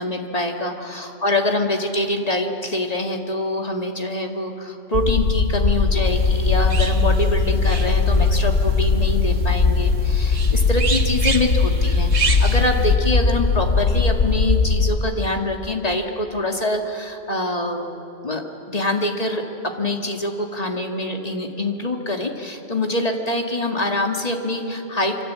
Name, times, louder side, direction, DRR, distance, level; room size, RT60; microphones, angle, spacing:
voice 1, 0.0-17.9 18.2-25.2, left 1 dB, 30° left, 3 dB, 2.1 m, -25 dB
sound 1, 4.9-14.9, left 4 dB, 65° left, 1.5 m, -19 dB
sound 2, 6.1-12.9, right 5 dB, 70° right, 1.8 m, -31 dB
25.5 x 25.0 x 8.5 m, 3.0 s
omnidirectional pair, 1.3 m